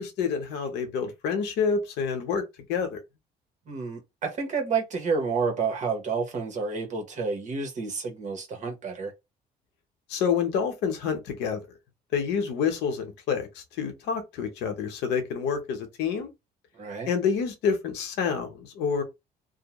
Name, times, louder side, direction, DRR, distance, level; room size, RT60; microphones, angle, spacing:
voice 1, 0.0-2.4 2.7-3.0 10.1-11.6 12.1-13.5 13.8-16.3 17.1-19.0, left 6 dB, 85° left, 0.9 m, -28 dB
voice 2, 3.7-9.1 16.7-17.1, right 5 dB, 45° right, 1.0 m, -30 dB
2.6 x 2.1 x 2.9 m
cardioid pair, 110°, 17 cm